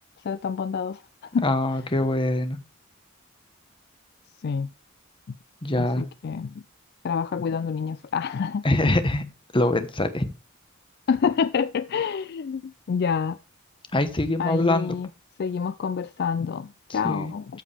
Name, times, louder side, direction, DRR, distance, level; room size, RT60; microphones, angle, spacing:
voice 1, 0.2-1.0 1.3-1.4 4.4-4.7 5.3-5.4 5.8-6.6 7.0-8.6 11.1-13.4 14.4-15.1 15.4-17.5, left 6 dB, 50° left, 0.4 m, -27 dB
voice 2, 1.4-2.6 5.6-6.0 8.6-9.2 9.5-10.2 13.9-14.9 16.9-17.3, left 1 dB, 25° left, 1.1 m, -23 dB
13.5 x 5.1 x 3.4 m
head